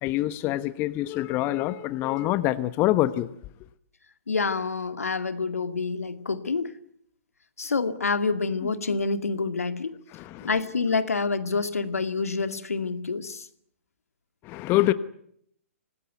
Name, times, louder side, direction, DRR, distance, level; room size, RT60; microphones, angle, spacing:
voice 1, 0.0-3.3 10.1-10.5 14.4-14.9, left 15 dB, 30° left, 1.1 m, -25 dB
voice 2, 4.3-6.8 7.6-9.9 10.4-13.5, left 4 dB, 80° left, 2.2 m, -27 dB
25.5 x 19.5 x 9.4 m
hypercardioid pair, 125°, 8 cm